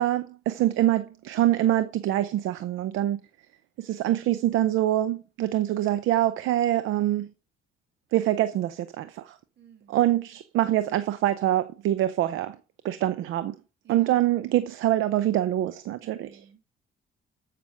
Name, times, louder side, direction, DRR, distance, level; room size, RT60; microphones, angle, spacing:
voice 1, 0.0-3.2 3.8-7.3 8.1-9.4 9.9-12.6 12.8-13.5 13.9-16.4, right 13 dB, 85° right, 0.7 m, -25 dB
voice 2, 9.6-10.1 13.8-14.4 16.2-16.6, right 8 dB, 60° right, 2.1 m, -52 dB
13.5 x 6.0 x 6.4 m
cardioid pair, 90°, 20 cm